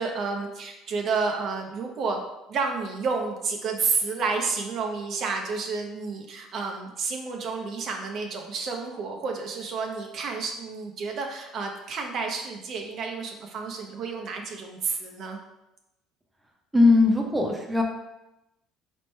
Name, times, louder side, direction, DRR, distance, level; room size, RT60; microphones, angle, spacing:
voice 1, 0.0-2.2 2.5-15.4, right 4 dB, 55° right, 2 dB, 0.6 m, -30 dB
voice 2, 16.7-17.8, left 3 dB, 10° right, 1 dB, 0.7 m, -19 dB
4.1 x 3.1 x 3.2 m, 0.93 s
supercardioid pair, 90°, 0 cm